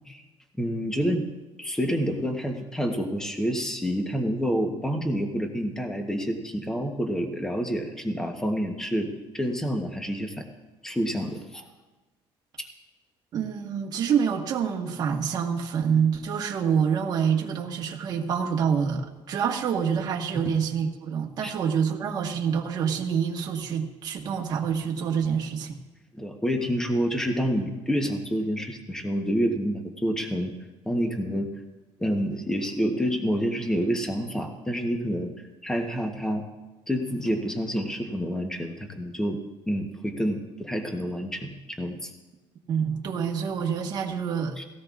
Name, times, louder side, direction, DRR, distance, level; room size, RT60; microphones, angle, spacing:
voice 1, 0.6-1.2 1.6-10.5 10.8-11.6 20.3-20.4 21.4-21.5 26.1-30.5 30.9-31.5 32.0-35.3 35.6-36.5 36.9-39.4 39.7-42.1 44.6-44.7, equal, 5° left, 4 dB, 1.0 m, -28 dB
voice 2, 13.3-25.8 42.7-44.6, right 7 dB, 40° right, 1 dB, 1.4 m, -26 dB
17.0 x 16.5 x 2.5 m, 1.1 s
cardioid pair, 160°, 10 cm